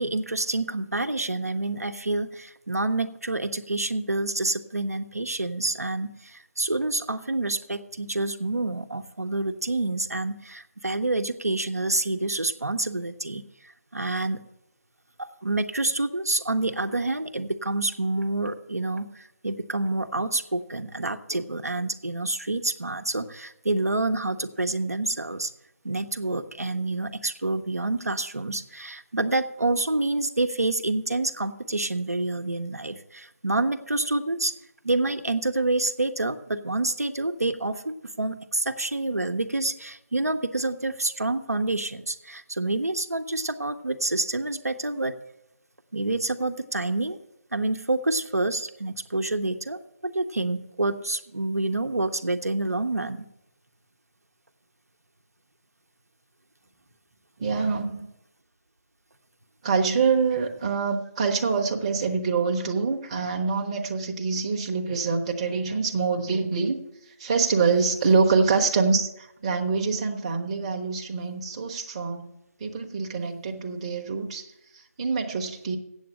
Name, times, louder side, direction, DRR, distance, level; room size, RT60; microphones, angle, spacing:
voice 1, 0.0-13.4 13.9-14.4 15.2-25.5 25.8-34.5 34.8-45.1 45.9-47.2 47.5-53.3, right 2 dB, 75° right, 8 dB, 0.9 m, -28 dB
voice 2, 57.4-58.1 59.6-66.8 67.2-72.3 72.6-74.5 75.0-75.8, right 4 dB, 25° right, 2 dB, 0.9 m, -25 dB
8.2 x 7.7 x 8.5 m, 0.84 s
figure-of-eight pair, 150°, 8 cm